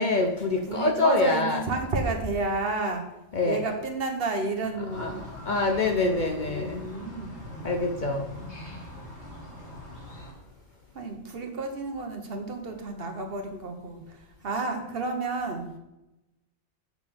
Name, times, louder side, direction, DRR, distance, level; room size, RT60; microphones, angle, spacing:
voice 1, 0.0-1.6 3.3-3.6 4.9-6.8 7.6-8.3, left 3 dB, 50° left, 3 dB, 0.7 m, -25 dB
voice 2, 0.7-3.0 3.4-5.2 6.0-7.3 10.9-15.7, right 3 dB, 60° right, 4 dB, 1.1 m, -31 dB
sound 1, 4.9-10.3, left 1 dB, 70° left, 2.1 m, -42 dB
7.6 x 6.2 x 3.4 m, 0.93 s
omnidirectional pair, 1.2 m